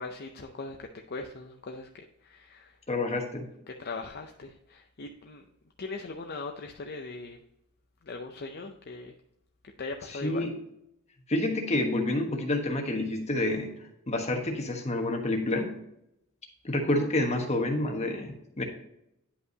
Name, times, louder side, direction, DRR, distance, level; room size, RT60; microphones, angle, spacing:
voice 1, 0.0-1.9 2.2-2.7 3.8-5.4 5.8-7.4 8.1-9.1 9.8-10.5, left 3 dB, 50° left, 4 dB, 0.6 m, -39 dB
voice 2, 2.9-3.5 10.1-10.5 11.3-13.7 14.1-15.7 16.6-18.6, left 1 dB, 30° left, 2 dB, 1.3 m, -28 dB
10.0 x 5.4 x 2.8 m, 0.80 s
head